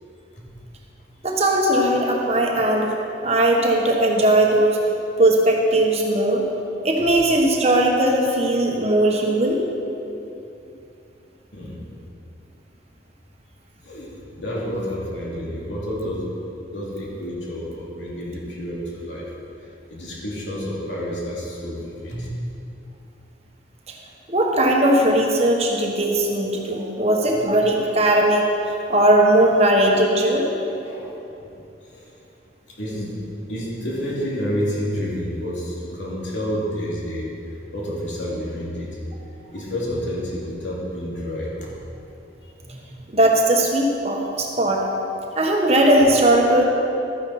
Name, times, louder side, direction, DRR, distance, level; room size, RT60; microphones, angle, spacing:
voice 1, 1.2-3.0 3.2-4.8 5.2-6.4 6.8-9.6 23.9-24.0 24.3-30.5 43.1-44.8 45.3-46.6, right 1 dB, 35° right, 0 dB, 1.3 m, -18 dB
voice 2, 13.8-16.3 16.7-19.3 19.9-22.3 30.8-31.1 31.4-31.5 31.9-32.1 32.8-33.2 33.5-37.3 37.7-38.9 39.5-41.7, equal, 75° left, -5 dB, 2.8 m, -29 dB
12.5 x 9.6 x 4.3 m, 2.8 s
head